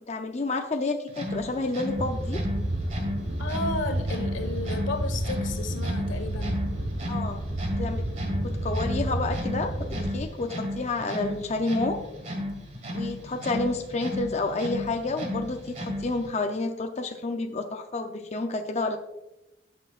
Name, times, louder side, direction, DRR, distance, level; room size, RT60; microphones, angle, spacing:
voice 1, 0.0-2.4 7.1-7.4 7.8-8.1 8.4-12.0 12.9-19.0, left 3 dB, 35° left, 4 dB, 0.6 m, -30 dB
sound 1, 1.1-16.3, left 1 dB, 35° right, 1.7 m, -35 dB
sound 2, 2.0-10.1, right 1 dB, 55° right, 1.2 m, -30 dB
voice 2, 3.4-6.7, left 2 dB, 90° left, 6 dB, 1.5 m, -33 dB
18.0 x 6.3 x 2.5 m, 0.96 s
head